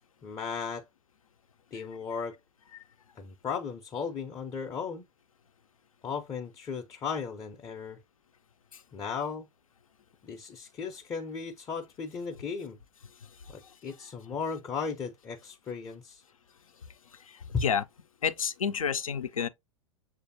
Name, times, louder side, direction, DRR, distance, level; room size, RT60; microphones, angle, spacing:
voice 1, 0.2-0.9 1.7-2.4 3.2-5.1 6.0-8.0 8.9-9.5 10.2-12.8 13.5-16.2 17.5-17.6, left 5 dB, 20° left, 0.5 m, -36 dB
voice 2, 17.1-17.8 18.2-19.5, left 7 dB, 85° left, 0.5 m, -31 dB
6.5 x 2.5 x 2.6 m
figure-of-eight pair, 100°, 17 cm